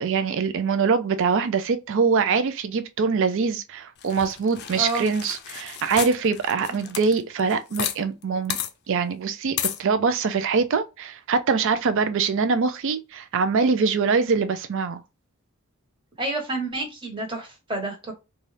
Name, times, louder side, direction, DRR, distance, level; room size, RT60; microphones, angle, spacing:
voice 1, 0.0-8.6 8.9-15.0, right 5 dB, 60° right, 0.4 m, -23 dB
sound 1, 4.0-8.2 8.5-8.7 9.6-9.8, left 10 dB, 50° left, 0.5 m, -32 dB
voice 2, 4.7-5.0 16.2-18.1, right 2 dB, 25° right, 1.3 m, -29 dB
4.0 x 2.3 x 3.2 m
head